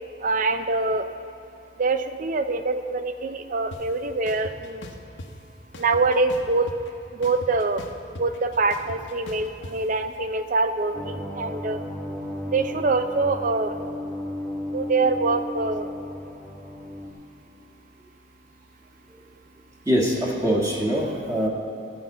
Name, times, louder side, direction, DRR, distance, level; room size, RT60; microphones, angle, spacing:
voice 1, 0.2-1.1 1.8-4.8 5.8-6.7 7.1-11.8 12.5-13.8 14.7-15.9 21.1-21.2, right 3 dB, 45° right, 9 dB, 0.5 m, -24 dB
sound 1, 3.7-3.8 4.3-5.3 5.7-6.9 7.2-9.7, left 1 dB, 65° left, 1.0 m, -39 dB
sound 2, 10.9-17.1, left 1 dB, ahead, 1.2 m, -34 dB
voice 2, 19.8-21.5, equal, 15° right, -3 dB, 1.5 m, -23 dB
12.0 x 5.0 x 8.1 m, 2.7 s
head